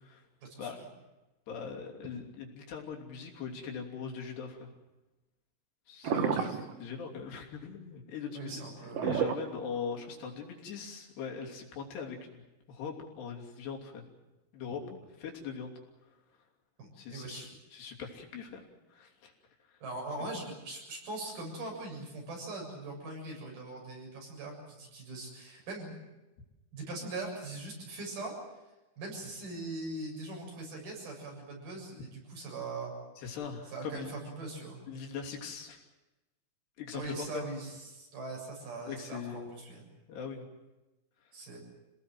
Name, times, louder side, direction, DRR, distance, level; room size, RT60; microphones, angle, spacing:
voice 1, 0.4-0.8 6.1-6.6 8.4-9.1 16.8-17.5 19.8-26.0 26.7-28.3 29.0-32.9 33.7-34.8 36.9-39.9 41.3-41.6, right 2 dB, 65° right, 0 dB, 9.2 m, -41 dB
voice 2, 1.5-4.7 5.9-6.4 6.8-8.6 9.0-14.0 14.5-15.7 16.9-18.6 18.9-19.3 19.7-19.8 33.2-34.1 34.9-35.8 36.8-37.4 38.9-39.5 40.1-40.5, left 6 dB, 85° left, 1 dB, 5.1 m, -41 dB
sound 1, 6.0-6.8 8.9-10.0 10.7-10.8, right 7 dB, 85° right, 1.3 m, -31 dB
28.0 x 18.5 x 7.8 m, 1.0 s
omnidirectional pair, 4.6 m